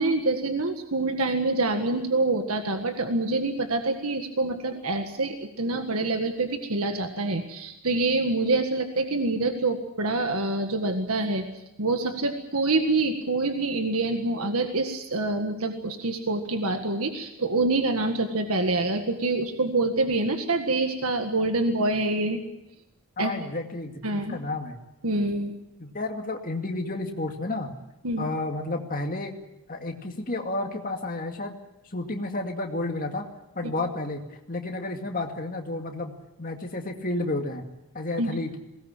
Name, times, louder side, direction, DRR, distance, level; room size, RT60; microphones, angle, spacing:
voice 1, 0.0-11.4 11.8-22.4 23.2-23.3 24.0-24.4 25.0-25.5 28.0-28.3 38.2-38.3, right 2 dB, 90° right, 5 dB, 1.7 m, -26 dB
voice 2, 23.2-24.8 25.8-27.7 28.2-29.3 29.7-31.6 31.8-33.2 33.6-34.2 34.5-37.7 37.9-38.5, left 2 dB, 40° left, 3 dB, 2.3 m, -31 dB
21.0 x 18.5 x 9.0 m, 0.91 s
head